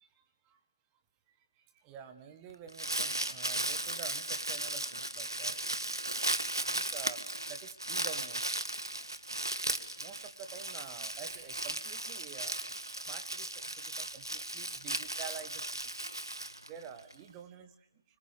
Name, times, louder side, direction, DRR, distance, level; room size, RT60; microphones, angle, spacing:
voice 1, 1.4-5.6 6.7-16.0 16.7-17.9, right 7 dB, 15° right, 7 dB, 1.6 m, -49 dB
Crumpling crinkling, 2.5-17.1, right 1 dB, 85° right, 1.9 m, -36 dB
28.0 x 25.0 x 6.8 m, 0.76 s
figure-of-eight pair, 155°, 2 cm